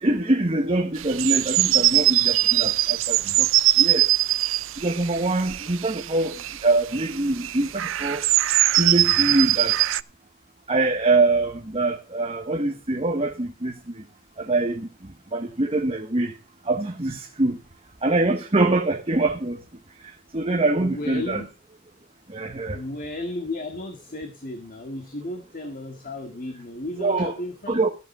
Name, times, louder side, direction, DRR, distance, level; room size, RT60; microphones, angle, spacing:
voice 1, 0.0-3.5 3.8-4.1 4.8-8.3 8.8-9.8 10.7-14.0 14.4-16.3 16.6-17.6 18.0-19.6 20.0-21.4 22.3-22.8 27.0-27.3 27.7-27.9, right 2 dB, 30° right, 1.2 m, -24 dB
sound 1, 1.0-6.7 6.9-10.0, right 15 dB, 85° right, 0.5 m, -22 dB
voice 2, 20.8-21.5 22.7-27.9, left 2 dB, 45° left, 1.9 m, -34 dB
14.0 x 7.6 x 5.5 m
head